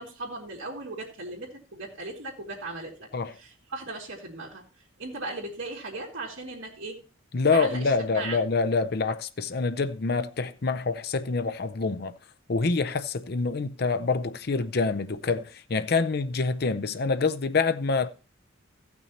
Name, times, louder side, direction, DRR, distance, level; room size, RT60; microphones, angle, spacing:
voice 1, 0.0-3.1 3.3-4.6 5.0-7.0 7.5-8.4, right 2 dB, 70° right, 2.7 m, -37 dB
voice 2, 7.3-12.1 12.5-18.1, left 4 dB, 50° left, 0.6 m, -26 dB
15.0 x 6.2 x 4.2 m
head